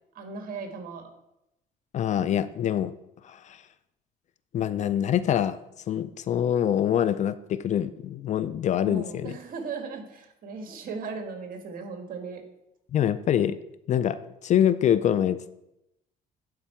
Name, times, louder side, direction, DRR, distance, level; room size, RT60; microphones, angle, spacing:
voice 1, 0.1-1.1 8.8-12.4, right 4 dB, 55° right, 4 dB, 1.7 m, -37 dB
voice 2, 1.9-3.0 3.2-3.6 4.5-5.6 5.9-9.4 12.9-13.6 13.9-15.5, left 10 dB, 45° left, 15 dB, 0.4 m, -25 dB
11.5 x 4.5 x 4.4 m, 0.85 s
cardioid pair, 110°, 17 cm